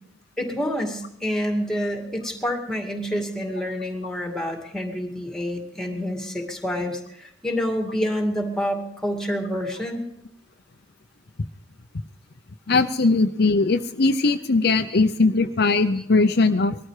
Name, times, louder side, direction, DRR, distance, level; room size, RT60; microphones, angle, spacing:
voice 1, 0.4-10.0 14.9-15.0, equal, 5° left, 3 dB, 2.3 m, -28 dB
voice 2, 12.7-16.8, left 3 dB, 60° left, 8 dB, 0.7 m, -20 dB
20.0 x 13.5 x 4.9 m, 0.74 s
head